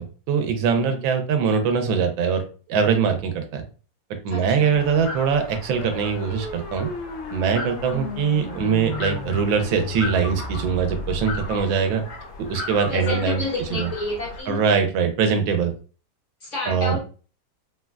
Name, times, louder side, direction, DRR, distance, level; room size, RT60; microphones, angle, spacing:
voice 1, 0.0-2.4 2.7-3.6 4.2-6.9 7.3-12.0 12.4-13.4 13.8-13.9 14.5-15.7 16.7-17.0, right 6 dB, 85° right, 6 dB, 1.4 m, -22 dB
voice 2, 0.7-1.0 4.3-4.8 12.9-14.6 16.4-17.0, left 2 dB, 50° left, -4 dB, 1.1 m, -30 dB
sound 1, 4.7-14.4, left 2 dB, 85° left, 1.6 m, -37 dB
sound 2, 4.7-11.6, left 2 dB, 65° left, 0.7 m, -35 dB
3.7 x 2.1 x 2.2 m, 0.37 s
omnidirectional pair, 2.1 m